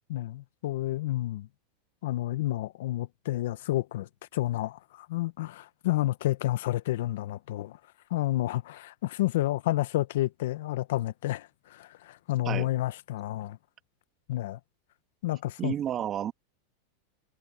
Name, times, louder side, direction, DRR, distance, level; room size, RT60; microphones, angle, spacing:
voice 1, 0.1-1.5 2.0-7.8 8.1-13.6 14.3-14.6 15.2-15.7, left 15 dB, 75° left, 1.4 m, -30 dB
voice 2, 15.6-16.3, right 10 dB, 35° right, 2.2 m, -31 dB
hypercardioid pair, 110°, 0 cm